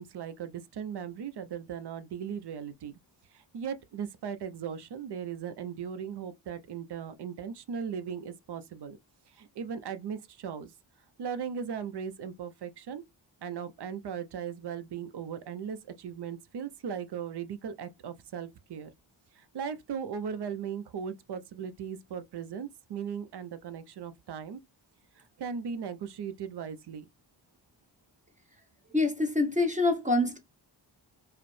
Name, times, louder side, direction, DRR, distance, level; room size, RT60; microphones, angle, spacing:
voice 1, 0.0-2.9 3.3-9.0 9.3-10.7 11.2-13.0 13.4-18.9 19.3-24.6 25.2-27.1, right 7 dB, 60° right, 0.6 m, -38 dB
voice 2, 28.9-30.4, left 2 dB, 15° right, 0.7 m, -25 dB
4.8 x 2.1 x 3.1 m
wide cardioid pair, 105°, 46 cm